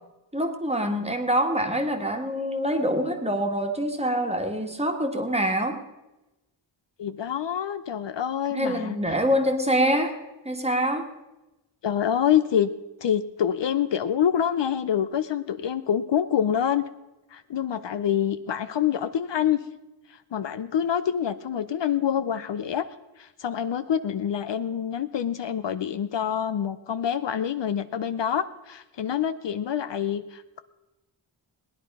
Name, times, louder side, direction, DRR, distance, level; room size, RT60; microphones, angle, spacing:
voice 1, 0.3-5.8 8.5-10.1 10.4-11.1, equal, 15° right, 4 dB, 1.6 m, -25 dB
voice 2, 7.0-9.0 11.8-12.7 13.0-16.8 17.3-19.6 20.1-22.8 23.2-30.6, left 9 dB, 65° left, 12 dB, 0.7 m, -26 dB
19.0 x 10.5 x 5.4 m, 1.0 s
wide cardioid pair, 150°, 47 cm